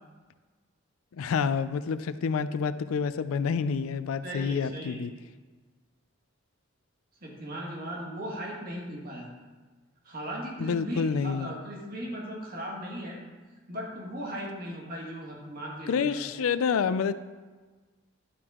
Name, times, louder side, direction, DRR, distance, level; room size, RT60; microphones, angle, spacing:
voice 1, 1.1-5.1 10.6-11.5 15.9-17.1, left 6 dB, 85° left, 13 dB, 0.4 m, -28 dB
voice 2, 4.2-5.1 7.2-9.3 10.0-13.2 13.7-16.2, equal, 45° right, -2 dB, 1.7 m, -37 dB
11.0 x 4.7 x 3.6 m, 1.4 s
head